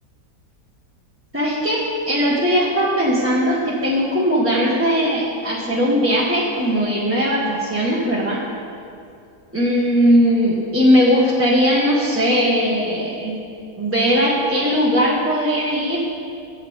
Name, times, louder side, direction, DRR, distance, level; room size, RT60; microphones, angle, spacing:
voice 1, 1.3-8.4 9.5-13.4 13.8-16.0, equal, 10° right, -7 dB, 1.4 m, -19 dB
24.0 x 8.0 x 3.6 m, 2.5 s
omnidirectional pair, 1.9 m